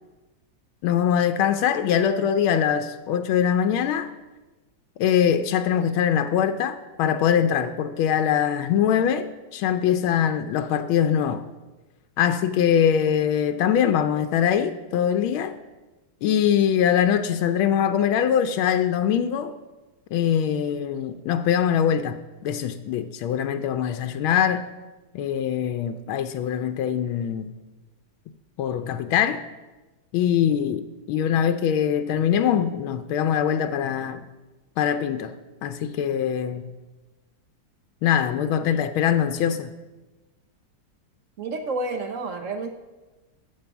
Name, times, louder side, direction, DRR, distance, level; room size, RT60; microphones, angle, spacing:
voice 1, 0.8-4.1 5.0-11.4 12.2-15.5 16.2-19.5 20.1-24.7 25.1-27.5 28.6-29.4 30.1-34.2 34.8-35.3 35.6-36.7 38.0-39.7, left 9 dB, 85° left, 1.4 m, -23 dB
voice 2, 41.4-42.7, right 2 dB, 60° right, 0.8 m, -29 dB
13.0 x 4.9 x 8.1 m
omnidirectional pair, 2.2 m